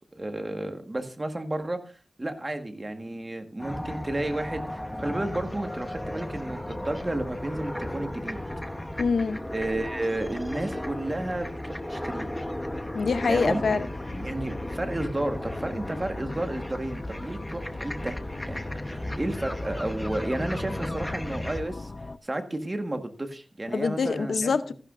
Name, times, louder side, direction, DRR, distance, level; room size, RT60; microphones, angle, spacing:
voice 1, 0.1-1.8 2.2-8.4 9.5-12.3 13.3-13.6 14.1-18.2 18.4-18.6 18.8-21.9 22.2-24.5, right 1 dB, 25° right, 1.5 m, -32 dB
sound 1, 3.6-21.6, left 1 dB, 10° left, 0.9 m, -35 dB
voice 2, 9.0-9.4 12.9-13.9 23.7-24.7, left 4 dB, 85° left, 0.6 m, -25 dB
sound 2, 13.3-22.2, left 3 dB, 35° left, 0.5 m, -40 dB
14.5 x 11.0 x 2.5 m
wide cardioid pair, 110°, 0 cm